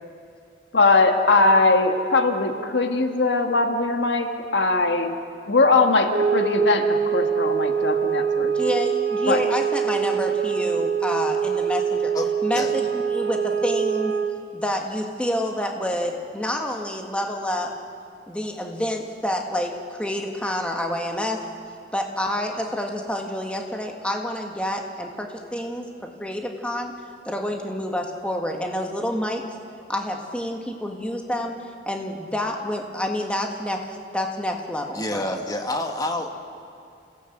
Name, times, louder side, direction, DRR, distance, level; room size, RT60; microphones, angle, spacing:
voice 1, 0.7-5.1 5.5-8.7 9.3-9.4, left 3 dB, 80° left, 5 dB, 1.7 m, -20 dB
sound 1, 6.1-14.5, right 7 dB, 70° right, 2.5 m, -24 dB
voice 2, 8.6-12.1 12.4-14.2 14.5-17.7 18.3-21.5 21.9-25.9 26.2-26.9 27.3-29.5 29.9-35.4, left 1 dB, 5° left, 1 dB, 1.8 m, -28 dB
voice 3, 12.1-12.7 34.9-36.3, left 1 dB, 20° left, 3 dB, 1.7 m, -28 dB
27.5 x 17.0 x 8.0 m, 2.5 s
head